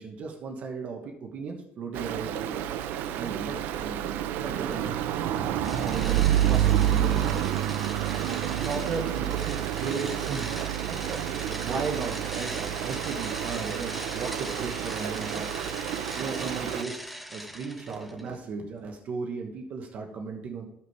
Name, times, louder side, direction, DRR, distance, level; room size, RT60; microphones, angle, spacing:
voice 1, 0.0-2.6 3.1-5.0 5.3-7.6 8.2-10.7 11.1-15.6 15.9-17.0 17.3-20.6, right 4 dB, 40° right, 2 dB, 1.2 m, -36 dB
Stream, 1.9-16.8, right 11 dB, 60° right, 0.6 m, -29 dB
sound 1, 5.6-18.3, equal, ahead, 0.5 m, -40 dB
13.5 x 5.8 x 4.7 m, 0.81 s
cardioid pair, 155°, 4 cm